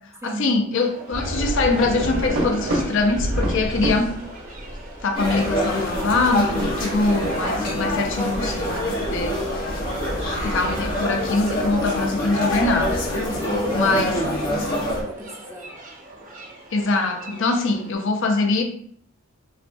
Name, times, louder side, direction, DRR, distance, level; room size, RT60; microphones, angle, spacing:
voice 1, 0.2-4.1 5.0-9.4 10.4-13.0 13.7-14.2 16.7-18.6, left 3 dB, 65° left, 5 dB, 0.6 m, -23 dB
sound 1, 0.7-17.9, right 2 dB, 40° right, 0.8 m, -41 dB
sound 2, 1.1-13.2, right 1 dB, 85° right, 1.0 m, -30 dB
sound 3, 5.1-15.0, left 1 dB, 45° left, 1.2 m, -25 dB
voice 2, 13.3-15.7, right 1 dB, 15° right, 1 dB, 0.5 m, -35 dB
5.6 x 2.2 x 2.6 m, 0.64 s
head